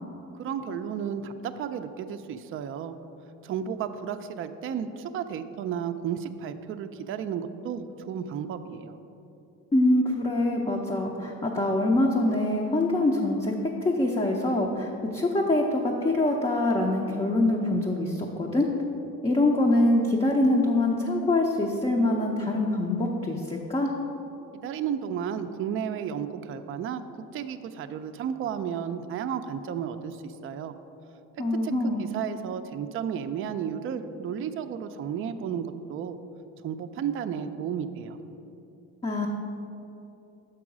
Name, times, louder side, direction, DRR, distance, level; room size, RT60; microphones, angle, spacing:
voice 1, 0.4-3.0 3.4-9.0 24.6-27.0 27.3-30.7 31.6-31.7 32.0-36.2 36.6-38.2, right 8 dB, 40° right, 8 dB, 0.4 m, -33 dB
voice 2, 9.7-13.5 13.8-18.7 19.2-23.9 31.4-32.1 39.0-39.3, left 1 dB, 20° left, -1 dB, 0.5 m, -24 dB
6.1 x 4.8 x 6.0 m, 2.9 s
cardioid pair, 110°, 32 cm